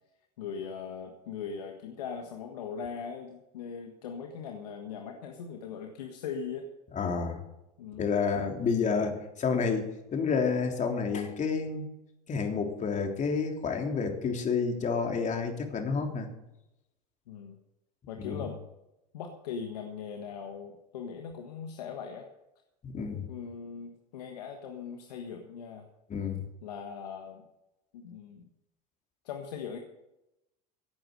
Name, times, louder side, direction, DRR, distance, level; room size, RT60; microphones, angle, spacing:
voice 1, 0.4-6.7 7.8-8.2 17.3-17.6 18.1-18.6 19.1-22.3 23.3-25.9 26.6-27.5 27.9-28.5 29.2-29.8, left 6 dB, 85° left, 4 dB, 1.5 m, -40 dB
voice 2, 6.9-7.4 8.0-11.9 12.3-16.3 18.2-18.4 22.8-23.3 26.1-26.4, left 5 dB, 40° left, 3 dB, 3.4 m, -29 dB
17.0 x 9.0 x 6.7 m, 0.92 s
hypercardioid pair, 85°, 20 cm